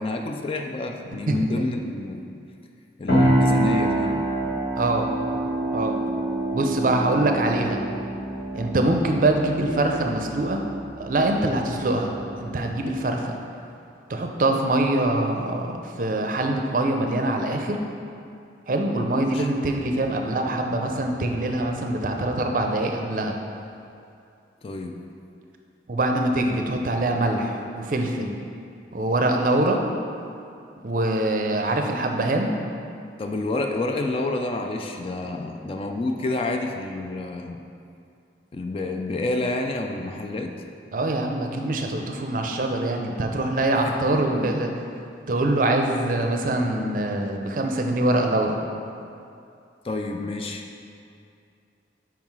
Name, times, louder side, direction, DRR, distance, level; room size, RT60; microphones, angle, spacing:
voice 1, 0.0-2.2 3.0-4.2 19.3-19.5 24.6-25.0 33.2-37.6 38.5-40.5 43.8-43.9 49.8-50.6, left 2 dB, 30° left, 3 dB, 0.3 m, -28 dB
voice 2, 1.3-1.6 4.8-5.1 5.7-6.0 6.5-7.8 8.5-10.6 11.0-13.4 14.1-17.8 18.7-23.4 25.9-28.4 28.9-29.8 30.8-32.6 40.9-44.7 45.3-48.6, right 2 dB, 45° right, 3 dB, 0.5 m, -24 dB
sound 1, 3.1-12.8, right 1 dB, 80° left, 1.6 m, -26 dB
5.6 x 4.7 x 4.6 m, 2.5 s
head